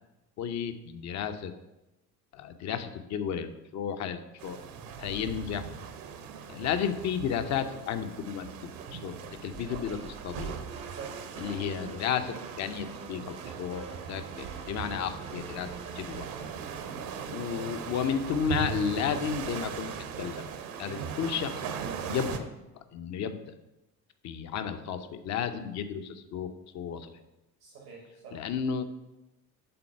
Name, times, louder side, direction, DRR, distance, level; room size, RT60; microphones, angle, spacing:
voice 1, 0.4-1.5 2.3-4.6 5.0-5.7 6.5-8.5 8.9-10.5 11.4-15.7 16.0-16.3 17.3-20.5 20.8-21.6 22.1-22.4 22.7-23.4 24.2-27.1 28.3-28.8, left 7 dB, 35° left, 9 dB, 0.7 m, -33 dB
sound 1, 4.4-22.4, right 7 dB, 50° right, 0.9 m, -39 dB
sound 2, 9.8-16.7, right 3 dB, 15° right, 0.6 m, -48 dB
voice 2, 10.8-11.2 16.7-17.1 20.8-21.1 27.6-28.4, right 5 dB, 80° right, -3 dB, 1.6 m, -46 dB
7.7 x 3.9 x 5.6 m, 0.94 s
figure-of-eight pair, 55°, 46 cm